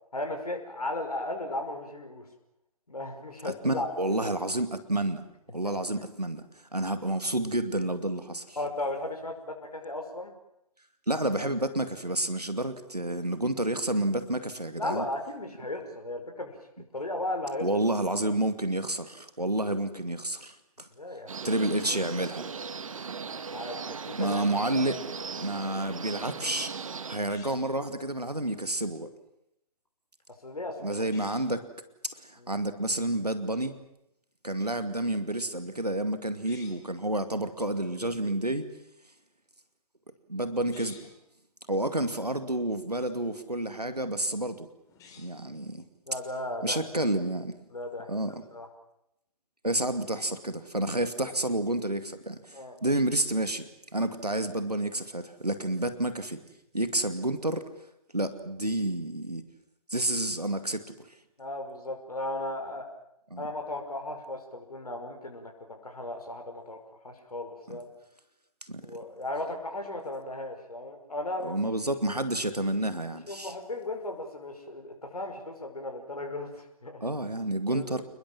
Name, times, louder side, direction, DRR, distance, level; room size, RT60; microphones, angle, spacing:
voice 1, 0.1-2.3 2.9-4.3 5.6-5.8 8.6-10.3 14.8-16.6 16.9-17.7 21.0-21.7 23.5-24.4 24.7-24.9 30.4-30.9 32.4-32.5 46.1-46.8 47.7-48.1 48.5-48.7 52.5-52.8 61.4-62.9 63.4-65.5 65.8-66.8 67.0-67.9 68.8-71.6 73.3-77.1 77.7-78.0, left 1 dB, 70° left, 4 dB, 5.6 m, -36 dB
voice 2, 3.4-5.2 5.5-6.5 6.7-8.6 11.1-15.1 17.6-20.9 21.4-22.5 24.2-25.0 25.3-26.7 27.1-29.1 30.8-31.7 32.0-33.8 34.4-38.7 40.3-41.1 41.7-44.7 45.2-45.8 46.6-47.5 48.1-48.4 49.6-56.4 56.7-57.7 58.1-59.4 59.9-60.9 63.3-63.5 67.7-67.8 68.6-68.9 71.4-73.5 77.0-78.0, right 1 dB, 85° right, 10 dB, 2.4 m, -30 dB
sound 1, 21.3-27.2, right 5 dB, 55° right, 1.8 m, -38 dB
sound 2, 27.2-27.8 31.0-31.5 36.3-37.0 40.6-41.2 44.8-45.5, left 6 dB, 15° left, 3.8 m, -53 dB
29.5 x 21.0 x 7.5 m, 0.80 s
figure-of-eight pair, 130°, 20 cm